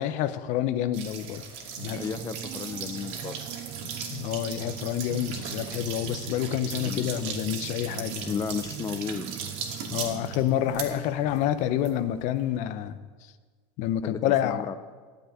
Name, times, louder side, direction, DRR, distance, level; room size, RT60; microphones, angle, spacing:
voice 1, 0.0-1.4 1.8-2.1 4.1-8.4 9.9-13.0 13.8-14.7, left 11 dB, 55° left, 12 dB, 0.9 m, -28 dB
sound 1, 0.9-12.6, right 6 dB, 65° right, 2.6 m, -38 dB
sound 2, 1.8-11.6, right 14 dB, 40° right, 0.4 m, -41 dB
voice 2, 1.9-3.5 6.8-7.1 8.0-9.3 14.0-14.8, left 6 dB, 25° left, 9 dB, 0.6 m, -34 dB
12.5 x 8.0 x 9.4 m, 1.5 s
supercardioid pair, 130°, 14 cm